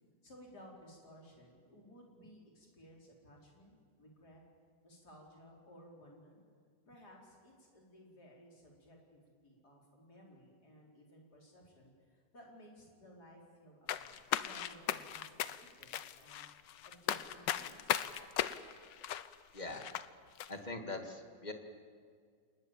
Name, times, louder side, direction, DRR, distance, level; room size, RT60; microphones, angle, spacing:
voice 1, 0.2-4.4 4.8-6.4 6.9-16.4 16.8-18.2, equal, 60° left, -1 dB, 5.5 m, -58 dB
sound 1, 13.9-20.1 20.4-20.5, left 11 dB, 80° left, 1.5 m, -37 dB
voice 2, 19.5-19.9 20.5-21.5, left 2 dB, 25° left, 4 dB, 2.2 m, -42 dB
28.0 x 19.5 x 7.4 m, 2.1 s
omnidirectional pair, 1.9 m